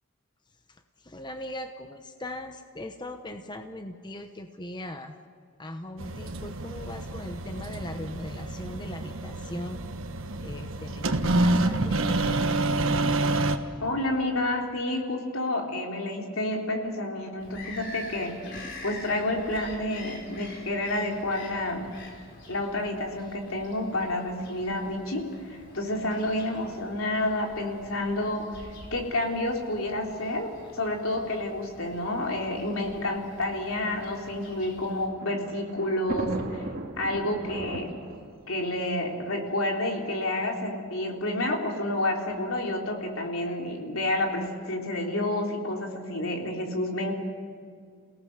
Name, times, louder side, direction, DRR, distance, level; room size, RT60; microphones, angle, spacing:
voice 1, 0.7-5.2 5.6-9.8 10.4-12.4 13.7-13.8, left 1 dB, 20° left, 6 dB, 1.0 m, -40 dB
sound 1, 6.0-13.6, right 2 dB, 70° right, 1.4 m, -28 dB
voice 2, 13.8-18.4 18.8-21.9 22.5-36.6 37.0-37.9 38.5-47.1, left 1 dB, 80° left, 1 dB, 3.6 m, -29 dB
Bird vocalization bird call bird song, 17.4-35.1, left 1 dB, 55° left, 4.1 m, -46 dB
Thunder, 34.6-40.0 40.8-40.9 41.1-41.2 42.3-42.6, right 1 dB, 45° right, 2.2 m, -38 dB
29.0 x 18.0 x 6.6 m, 2.2 s
head